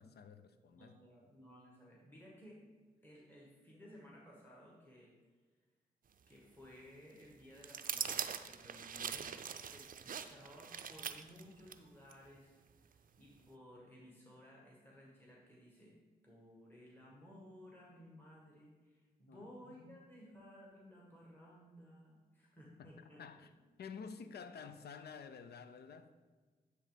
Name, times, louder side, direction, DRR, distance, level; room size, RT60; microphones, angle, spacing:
voice 1, 0.0-1.0 19.3-20.0 22.8-22.9 23.2-23.5 23.8-26.1, left 6 dB, 75° left, 0.5 m, -51 dB
voice 2, 0.7-2.6 3.0-5.1 6.3-9.3 9.6-15.9 16.2-23.5, equal, 10° left, 1.9 m, -58 dB
sound 1, 7.6-11.8 12.1-12.2, right 7 dB, 55° right, 0.5 m, -42 dB
9.7 x 3.3 x 5.1 m
cardioid pair, 50°, 17 cm